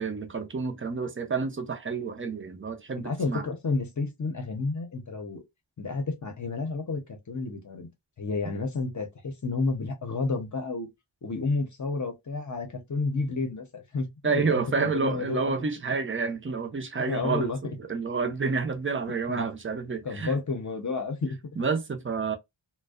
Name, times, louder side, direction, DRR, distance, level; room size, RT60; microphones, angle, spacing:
voice 1, 0.0-3.4 14.2-20.3 21.6-22.4, right 4 dB, 30° right, 0.4 m, -29 dB
voice 2, 3.0-5.4 5.8-7.9 8.2-10.9 11.2-15.5 17.0-17.8 19.3-19.5 20.0-21.4, left 3 dB, 40° left, 0.7 m, -31 dB
2.5 x 2.1 x 2.3 m
wide cardioid pair, 120°, 47 cm